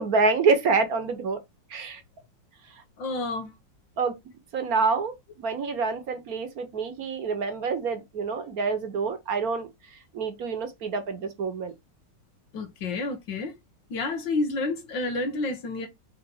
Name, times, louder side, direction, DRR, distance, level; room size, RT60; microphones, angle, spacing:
voice 1, 0.0-1.4 1.7-2.0 2.7-2.8 4.0-4.1 4.5-9.7 10.1-11.7, right 4 dB, 55° right, 1.5 m, -27 dB
voice 2, 3.0-3.5 12.5-13.5 13.9-15.9, left 3 dB, 85° left, 2.1 m, -29 dB
5.4 x 3.8 x 5.6 m
omnidirectional pair, 2.0 m